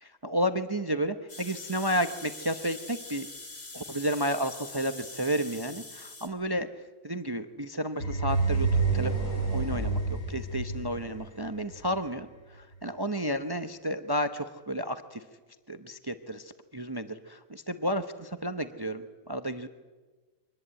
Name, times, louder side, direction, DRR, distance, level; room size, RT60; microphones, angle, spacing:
voice 1, 0.0-3.3 3.7-6.7 7.0-9.1 9.5-15.2 15.7-19.7, equal, 20° right, 9 dB, 0.8 m, -32 dB
sound 1, 1.3-6.3, left 3 dB, 45° left, 2.8 m, -44 dB
sound 2, 8.0-11.9, right 3 dB, 65° left, 5.2 m, -28 dB
24.5 x 19.5 x 8.9 m, 1.3 s
omnidirectional pair, 1.5 m